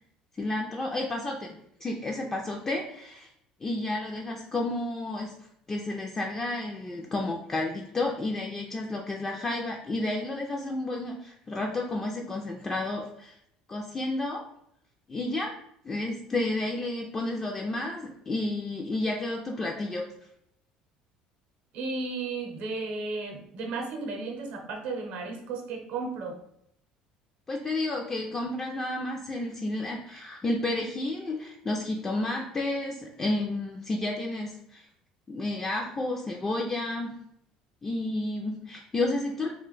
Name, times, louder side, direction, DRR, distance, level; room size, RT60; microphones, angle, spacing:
voice 1, 0.4-3.3 3.6-5.3 5.7-13.3 13.7-14.5 15.1-15.5 15.8-20.0 27.5-34.8 35.3-37.2 37.8-39.5, left 2 dB, 20° left, 0 dB, 0.3 m, -31 dB
voice 2, 21.7-26.4, right 3 dB, 65° right, 3 dB, 0.7 m, -34 dB
2.5 x 2.2 x 3.8 m, 0.74 s
cardioid pair, 120°, 2 cm